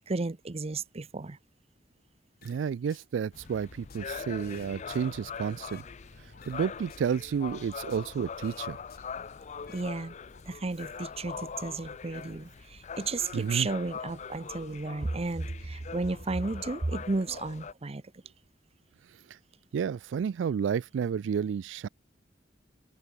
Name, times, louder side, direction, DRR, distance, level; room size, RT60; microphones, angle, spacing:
voice 1, 0.0-1.4 9.7-10.1 10.5-18.0, right 3 dB, 35° right, 0.7 m, -33 dB
sound 1, 2.4-3.1 3.4-5.9 6.3-8.2 8.4-9.9 10.2-10.4, left 7 dB, 55° left, 1.9 m, -57 dB
voice 2, 2.4-5.9 6.2-8.8 13.3-13.7 19.3-19.4 19.7-21.9, right 7 dB, 70° right, 0.3 m, -31 dB
sound 2, 3.3-17.7, left 6 dB, 40° left, 0.5 m, -42 dB
open air
head